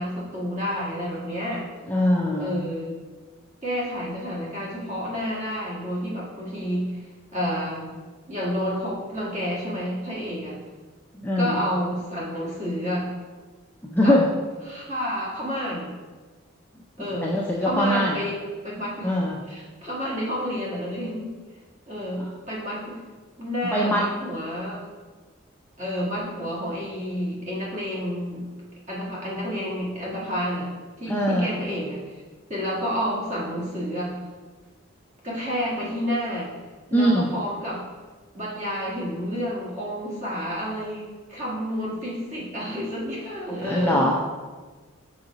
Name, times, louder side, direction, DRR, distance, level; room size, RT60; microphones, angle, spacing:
voice 1, 0.0-1.6 2.4-3.0 3.6-6.9 7.3-7.8 8.3-10.6 11.3-13.1 14.0-14.2 14.7-15.9 17.0-18.4 18.6-21.3 21.9-23.0 23.4-24.8 25.8-28.5 28.9-30.7 31.0-32.0 32.5-34.1 35.2-36.5 36.9-37.8 38.3-44.1, equal, 35° right, -5 dB, 1.5 m, -30 dB
voice 2, 1.9-2.6 11.2-11.6 13.8-14.2 17.2-18.2 19.0-19.4 22.2-22.3 23.6-24.0 31.1-31.5 36.9-37.3 43.6-44.1, equal, 10° left, -3 dB, 0.4 m, -22 dB
5.2 x 4.7 x 4.0 m, 1.3 s
head